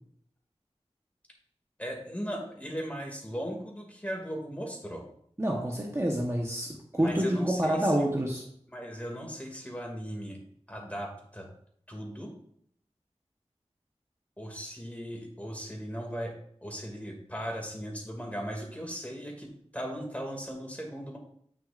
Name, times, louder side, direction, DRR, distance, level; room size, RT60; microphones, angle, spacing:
voice 1, 1.8-5.0 6.9-8.1 8.7-10.4 10.7-11.5 11.9-12.3 14.4-16.4 16.6-21.2, equal, 10° left, 1 dB, 2.3 m, -38 dB
voice 2, 5.4-6.7 6.9-8.4, right 1 dB, 25° right, -1 dB, 1.1 m, -27 dB
8.8 x 6.2 x 2.5 m, 0.66 s
wide cardioid pair, 50°, 12 cm